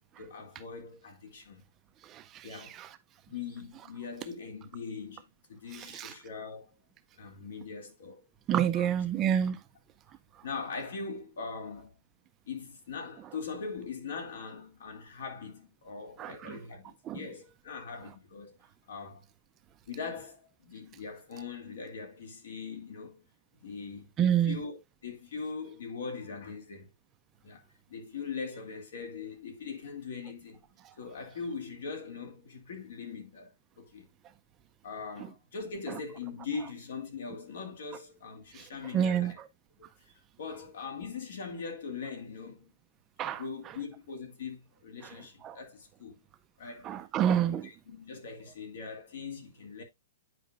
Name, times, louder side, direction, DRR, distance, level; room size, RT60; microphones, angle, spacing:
voice 1, 0.2-1.6 2.4-2.8 3.3-6.7 7.2-8.2 8.5-8.9 10.4-11.9 12.5-18.6 18.9-19.2 19.9-23.2 23.6-24.8 25.0-26.9 27.4-27.6 27.9-30.7 31.0-34.1 34.8-39.4 39.8-39.9 40.4-42.7 43.3-46.2 46.6-46.9 47.5-49.8, left 5 dB, 70° left, 2.3 m, -41 dB
voice 2, 2.1-2.5 2.8-2.9 5.9-6.1 8.5-9.6 16.2-16.6 17.1-17.2 24.2-24.6 38.9-39.3 43.2-43.4 45.4-45.6 46.8-47.7, right 9 dB, 20° right, 0.4 m, -28 dB
9.2 x 5.0 x 2.4 m
hypercardioid pair, 165°, 0 cm